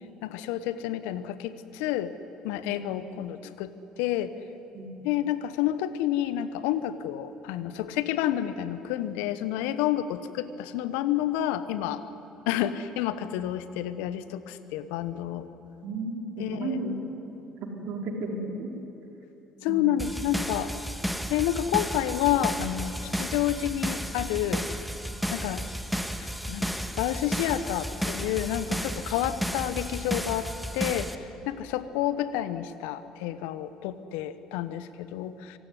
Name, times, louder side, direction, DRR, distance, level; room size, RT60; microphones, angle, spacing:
voice 1, 0.2-2.1 2.4-3.7 4.0-4.3 5.0-12.0 12.5-15.5 16.4-16.8 19.6-20.7 21.3-24.6 25.3-25.6 26.5-26.7 27.0-31.1 31.5-35.6, left 12 dB, 75° left, 13 dB, 1.1 m, -29 dB
voice 2, 15.8-17.0 17.8-18.7 19.7-19.9, right 2 dB, 60° right, 1 dB, 4.6 m, -33 dB
sound 1, 20.0-31.2, equal, ahead, 1.6 m, -33 dB
25.5 x 17.5 x 9.8 m, 3.0 s
hypercardioid pair, 60°, 3 cm